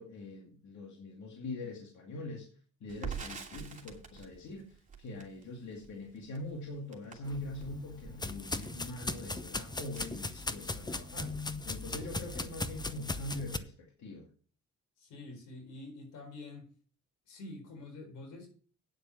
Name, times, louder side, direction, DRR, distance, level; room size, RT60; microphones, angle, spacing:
voice 1, 0.0-2.5 2.8-14.3, left 2 dB, 65° left, 0 dB, 2.4 m, -43 dB
Crackle, 2.9-11.0 11.3-11.4 11.7-12.5, right 6 dB, 25° right, 2.8 m, -47 dB
sound 1, 7.2-13.6, left 2 dB, 15° left, 0.8 m, -38 dB
voice 2, 15.0-16.7 17.3-18.5, left 2 dB, 85° left, 5 dB, 4.3 m, -47 dB
9.3 x 7.6 x 6.2 m, 0.43 s
cardioid pair, 90°, 30 cm